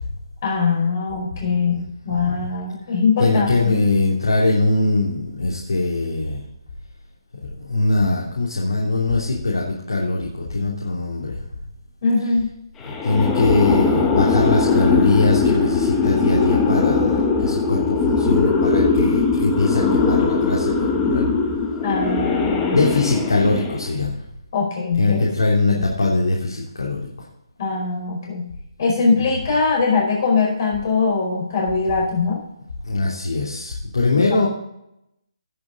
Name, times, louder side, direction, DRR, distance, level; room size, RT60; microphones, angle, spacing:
voice 1, 0.4-3.8 12.0-12.5 21.8-23.2 24.5-25.2 25.7-25.9 27.6-28.5 28.8-32.4 34.3-34.5, left 4 dB, 45° left, -2 dB, 4.8 m, -22 dB
voice 2, 2.1-2.5 3.2-6.4 7.4-11.5 12.9-21.2 22.7-24.1 25.0-27.1 32.8-34.5, left 2 dB, 80° left, -3 dB, 3.1 m, -21 dB
sound 1, 12.8-24.0, left 4 dB, 10° left, 1.3 m, -20 dB
18.0 x 7.0 x 3.9 m, 0.80 s
hypercardioid pair, 160°, 3 cm